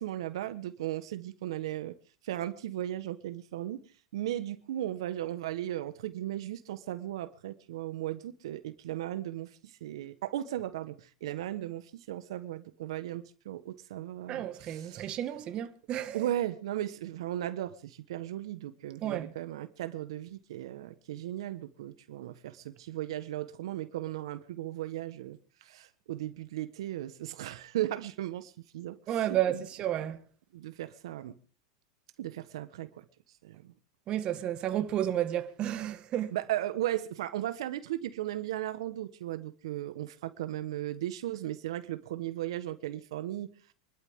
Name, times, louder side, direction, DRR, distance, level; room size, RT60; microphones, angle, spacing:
voice 1, 0.0-2.0 2.2-3.8 4.1-15.2 16.1-29.7 30.5-31.3 32.2-33.0 33.4-33.7 36.3-43.5, right 13 dB, 75° right, 1.3 m, -36 dB
voice 2, 14.3-16.2 19.0-19.3 29.1-30.2 34.1-36.3, right 11 dB, 35° right, 1.7 m, -32 dB
27.0 x 12.5 x 3.7 m
hypercardioid pair, 120°, 3 cm